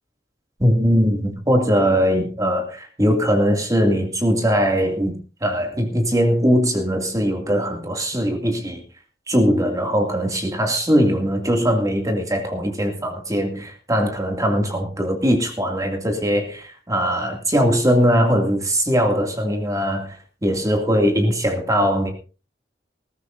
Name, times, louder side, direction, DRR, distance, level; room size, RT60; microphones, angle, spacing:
voice 1, 0.6-5.2 5.4-8.8 9.3-22.1, equal, 20° right, 3 dB, 2.3 m, -20 dB
19.5 x 15.0 x 2.6 m, 0.33 s
head